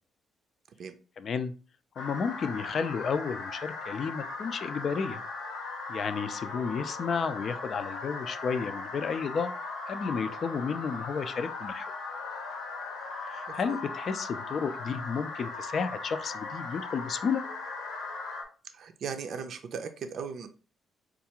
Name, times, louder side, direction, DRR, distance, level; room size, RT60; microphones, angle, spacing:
voice 1, 1.2-1.5 2.0-5.2 5.9-9.5 9.9-11.9 13.3-17.4, left 6 dB, 55° left, 10 dB, 0.4 m, -32 dB
sound 1, 2.0-18.4, left 3 dB, 85° left, 1.0 m, -38 dB
voice 2, 13.5-13.8 18.7-20.5, right 6 dB, 60° right, 7 dB, 0.5 m, -38 dB
4.5 x 2.4 x 2.9 m, 0.37 s
cardioid pair, 90°, 0 cm